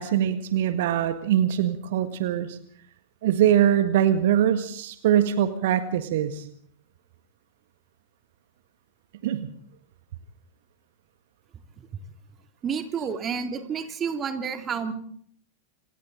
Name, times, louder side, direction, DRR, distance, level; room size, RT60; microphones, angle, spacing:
voice 1, 0.0-2.6 3.2-6.4 9.2-9.5, right 10 dB, 55° right, 10 dB, 1.5 m, -23 dB
voice 2, 12.6-14.9, right 6 dB, 25° right, 7 dB, 2.3 m, -30 dB
27.0 x 26.0 x 3.9 m, 0.63 s
figure-of-eight pair, 90°, 0 cm